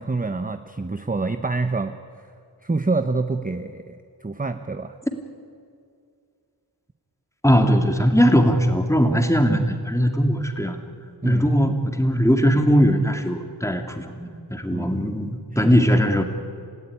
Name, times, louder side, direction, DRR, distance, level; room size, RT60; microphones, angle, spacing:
voice 1, 0.0-2.0 2.6-5.0 11.2-11.4 14.7-15.0 15.5-15.7, right 3 dB, 20° right, 8 dB, 0.8 m, -27 dB
voice 2, 7.4-10.8 11.2-16.2, equal, 5° left, 4 dB, 2.3 m, -20 dB
27.5 x 15.5 x 9.8 m, 2.3 s
wide cardioid pair, 60°, 43 cm